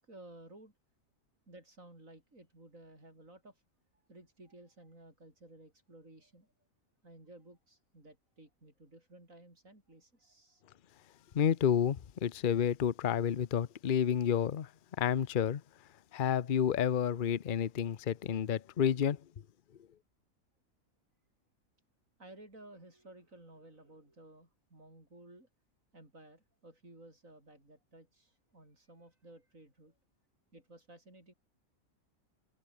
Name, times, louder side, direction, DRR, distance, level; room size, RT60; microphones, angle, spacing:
voice 1, 0.0-0.7 1.5-3.6 3.9-6.5 7.0-10.6 22.2-25.5 25.9-30.0 30.5-31.3, right 1 dB, 70° right, 8.2 m, -56 dB
voice 2, 11.3-14.7 15.0-15.6 16.1-19.2, left 8 dB, 45° left, 0.8 m, -30 dB
omnidirectional pair, 1.4 m